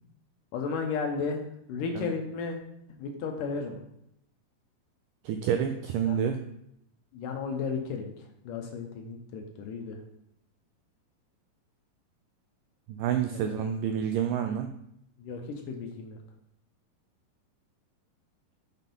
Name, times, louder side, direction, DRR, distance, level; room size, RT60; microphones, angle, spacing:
voice 1, 0.5-1.4 1.7-2.6 2.9-3.8 6.0-6.2 7.1-8.1 8.5-10.0 13.3-13.6 15.2-16.2, left 5 dB, 75° left, 3 dB, 2.1 m, -34 dB
voice 2, 5.2-6.4 12.9-14.7, right 8 dB, 85° right, 6 dB, 1.9 m, -28 dB
5.9 x 5.8 x 5.4 m, 0.76 s
omnidirectional pair, 4.3 m